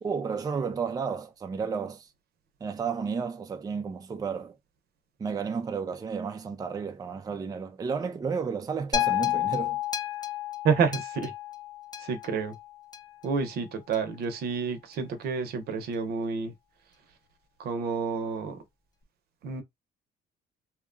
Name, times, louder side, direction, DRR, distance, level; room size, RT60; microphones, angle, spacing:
voice 1, 0.0-2.1 2.6-4.6 5.2-9.8, right 5 dB, 20° right, 0.5 m, -32 dB
sound 1, 8.9-13.3 13.9-14.0, left 12 dB, 25° left, 0.6 m, -31 dB
voice 2, 10.6-11.3 12.0-12.6 13.2-16.5 17.6-18.6 19.4-19.6, right 5 dB, 70° right, 0.8 m, -29 dB
2.8 x 2.2 x 2.5 m
cardioid pair, 110°, 17 cm